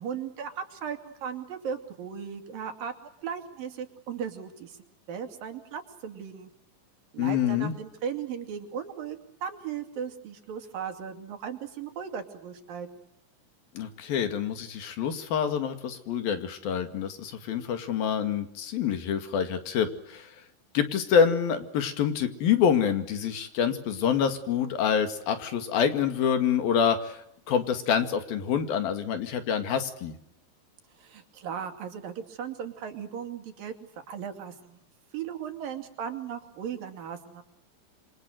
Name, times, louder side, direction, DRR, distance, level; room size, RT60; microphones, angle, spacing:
voice 1, 0.0-2.9 3.2-4.8 5.1-6.5 7.1-12.9 31.0-33.7 34.1-34.8 35.1-37.4, right 7 dB, 75° right, 6 dB, 4.4 m, -37 dB
voice 2, 7.2-7.7 13.8-20.3 20.7-30.2, left 7 dB, 85° left, 8 dB, 4.1 m, -26 dB
27.5 x 25.5 x 7.9 m, 0.78 s
omnidirectional pair, 4.1 m